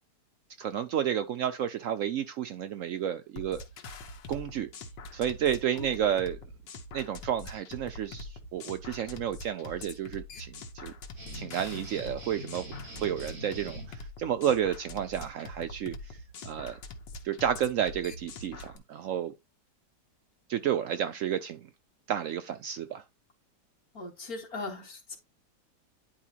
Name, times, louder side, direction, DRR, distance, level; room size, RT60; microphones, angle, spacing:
voice 1, 0.6-3.6 4.3-4.7 5.1-6.4 6.9-10.9 11.3-12.6 13.0-16.2 16.4-16.8 17.2-19.3 20.5-21.7 22.1-23.0, right 9 dB, 75° right, 0.7 m, -31 dB
sound 1, 3.4-18.8, left 2 dB, 85° left, 1.8 m, -44 dB
sound 2, 11.2-13.9, left 1 dB, 55° right, 3.1 m, -43 dB
voice 2, 23.9-25.2, left 2 dB, 55° left, 2.7 m, -39 dB
10.0 x 4.7 x 2.9 m
omnidirectional pair, 1.9 m